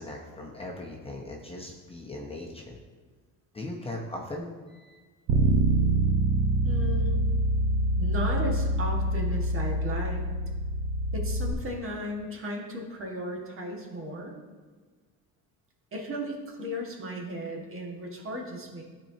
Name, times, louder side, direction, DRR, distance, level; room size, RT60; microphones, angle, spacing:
voice 1, 0.0-2.8 3.5-5.0, left 1 dB, 15° left, -1 dB, 0.8 m, -39 dB
Bass guitar, 5.3-11.5, right 1 dB, 85° right, 1.0 m, -25 dB
voice 2, 6.6-7.3 8.0-10.2 11.1-14.4 15.9-18.8, right 1 dB, 35° right, 0 dB, 1.6 m, -35 dB
11.5 x 4.5 x 2.8 m, 1.4 s
cardioid pair, 105°, 36 cm